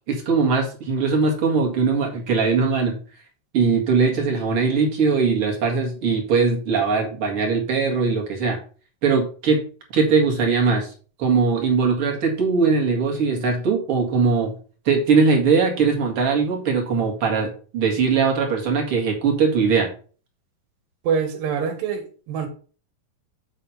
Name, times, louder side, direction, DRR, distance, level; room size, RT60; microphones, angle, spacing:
voice 1, 0.1-3.0 3.5-8.6 9.0-9.6 9.9-10.9 11.2-14.6 14.9-19.9, right 5 dB, 45° right, 2.6 m, -20 dB
voice 2, 21.0-22.5, right 6 dB, 85° right, 3.2 m, -25 dB
8.1 x 4.1 x 5.7 m
omnidirectional pair, 4.0 m